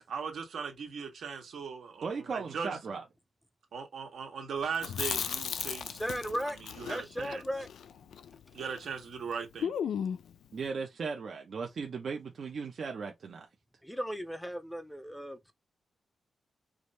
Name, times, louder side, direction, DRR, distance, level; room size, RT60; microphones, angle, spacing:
voice 1, 0.1-2.7 3.7-6.0 6.4-7.4 8.5-9.7, right 6 dB, 75° right, 1.6 m, -38 dB
voice 2, 2.0-3.0 10.5-13.5, right 5 dB, 55° right, 0.8 m, -37 dB
Chewing mastication, 4.7-8.9 9.2-9.3 9.6-10.4, left 8 dB, 85° left, 0.4 m, -36 dB
voice 3, 5.9-6.6 6.9-7.7 13.8-15.5, equal, 5° left, 0.5 m, -36 dB
4.9 x 2.7 x 3.3 m
wide cardioid pair, 140°, 0 cm